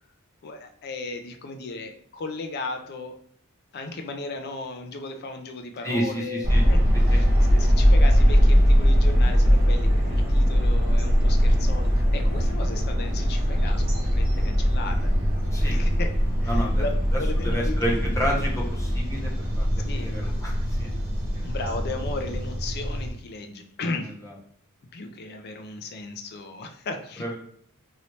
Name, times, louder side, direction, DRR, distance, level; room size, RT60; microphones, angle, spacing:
voice 1, 0.4-3.2 3.7-6.8 7.1-7.3 7.5-15.1 15.6-16.1 16.4-16.9 17.2-18.0 19.9-20.1 21.4-24.1 24.9-27.3, left 3 dB, 45° left, 6 dB, 0.4 m, -36 dB
voice 2, 5.8-6.6 7.1-7.2 15.5-15.8 16.4-16.8 17.1-19.7 19.9-20.9 23.4-23.6 24.2-24.3 27.2-27.3, equal, 15° left, -3 dB, 0.7 m, -30 dB
sound 1, 6.4-23.1, equal, 45° right, 1.1 m, -21 dB
3.0 x 2.8 x 3.0 m, 0.64 s
head